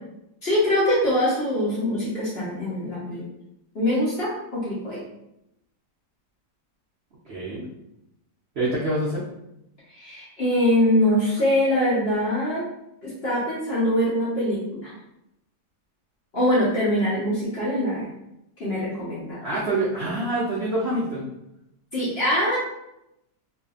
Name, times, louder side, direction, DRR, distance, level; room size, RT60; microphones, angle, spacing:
voice 1, 0.4-3.3 3.7-5.0 9.9-12.7 13.0-14.9 16.3-18.1 18.6-19.4 21.9-22.6, left 1 dB, 50° left, -8 dB, 0.8 m, -23 dB
voice 2, 7.3-7.7 8.6-9.2 19.4-21.2, right 1 dB, 70° right, -7 dB, 0.6 m, -26 dB
2.7 x 2.4 x 2.3 m, 0.83 s
omnidirectional pair, 1.8 m